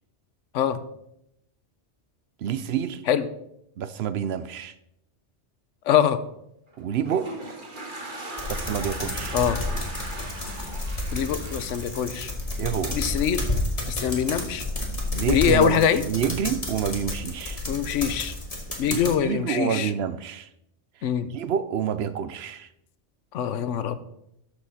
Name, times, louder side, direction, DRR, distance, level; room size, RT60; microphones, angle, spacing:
voice 1, 2.4-3.0 3.8-4.7 6.8-7.3 8.5-9.4 12.6-13.0 15.1-15.8 16.1-17.6 18.9-20.5 21.3-22.7, right 8 dB, 65° right, 0.8 m, -28 dB
voice 2, 5.9-6.2 9.3-9.6 11.1-12.3 12.9-13.4 13.9-14.6 15.3-16.0 17.7-18.3 18.8-19.9 21.0-21.3 23.3-24.0, left 8 dB, 80° left, 1.0 m, -23 dB
Toilet flush, 6.7-13.0, right 2 dB, 45° right, 1.7 m, -38 dB
sound 1, 8.4-19.1, left 2 dB, 30° left, 2.0 m, -31 dB
12.5 x 6.6 x 4.1 m
omnidirectional pair, 1.2 m